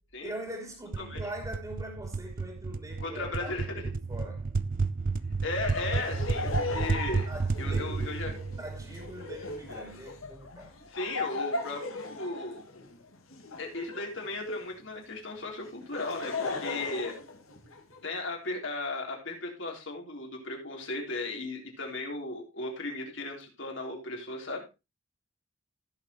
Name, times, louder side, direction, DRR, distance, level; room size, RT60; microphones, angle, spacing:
voice 1, 0.2-4.5 7.3-10.7, right 1 dB, 20° right, 2.6 m, -42 dB
sound 1, 0.9-9.6, right 4 dB, 40° right, 0.5 m, -32 dB
voice 2, 3.0-3.8 5.4-7.3 7.6-8.4 10.9-12.6 13.6-17.2 18.0-24.6, left 2 dB, 65° left, 3.5 m, -36 dB
Laughter, 5.7-14.8 15.6-18.0, left 3 dB, 85° left, 2.1 m, -37 dB
16.5 x 6.7 x 3.0 m
head